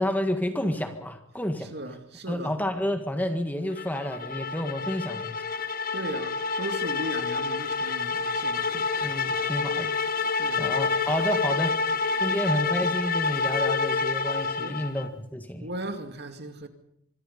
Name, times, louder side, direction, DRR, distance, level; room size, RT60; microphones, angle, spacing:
voice 1, 0.0-1.7 2.3-5.5 9.0-9.9 10.6-11.8 12.2-15.7, left 1 dB, 10° left, 1.7 m, -30 dB
voice 2, 1.6-2.5 5.9-8.9 10.4-10.7 11.7-11.8 14.6-14.8 15.6-16.7, right 1 dB, 50° right, 2.3 m, -37 dB
sound 1, 3.8-15.1, left 4 dB, 40° left, 1.2 m, -28 dB
25.5 x 22.0 x 5.4 m
head